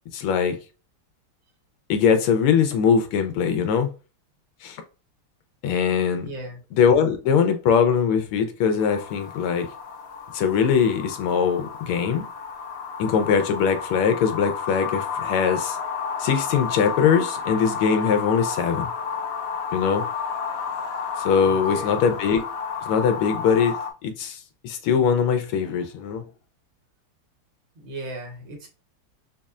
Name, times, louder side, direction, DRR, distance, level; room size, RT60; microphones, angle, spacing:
voice 1, 0.1-0.6 1.9-3.9 4.6-4.8 5.6-6.3 6.7-9.7 10.3-12.3 13.0-15.8 16.2-18.9 19.7-20.0 21.2-22.4 22.8-23.7 24.0-26.2, left 7 dB, 85° left, 1.6 m, -21 dB
voice 2, 6.2-6.6 21.5-22.0 27.8-28.7, right 2 dB, 65° right, 2.1 m, -36 dB
sound 1, 8.8-23.9, left 6 dB, 65° left, 1.0 m, -31 dB
5.3 x 2.4 x 2.3 m
omnidirectional pair, 2.4 m